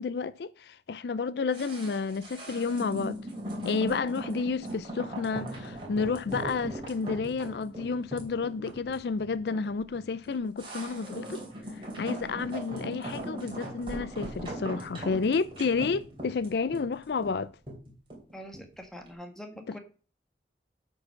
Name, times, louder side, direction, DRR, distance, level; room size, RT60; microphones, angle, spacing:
voice 1, 0.0-3.2 3.6-11.4 11.7-17.5 19.7-19.8, left 4 dB, 65° left, 0.4 m, -31 dB
sound 1, 1.5-18.8 19.1-19.2, right 1 dB, 30° right, 3.0 m, -39 dB
voice 2, 18.3-19.8, equal, 5° left, 1.3 m, -44 dB
8.2 x 5.4 x 5.7 m
head